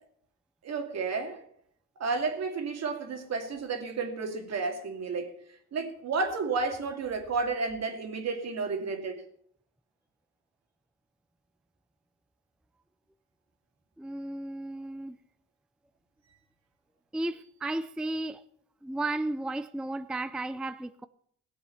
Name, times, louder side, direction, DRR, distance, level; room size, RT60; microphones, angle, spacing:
voice 1, 0.6-1.4 2.0-5.4 5.7-9.2, right 4 dB, 60° right, 2.4 m, -32 dB
voice 2, 14.0-15.2 17.1-18.4 18.8-21.1, right 2 dB, 5° right, 0.4 m, -34 dB
17.0 x 7.8 x 5.6 m
cardioid pair, 90°, 30 cm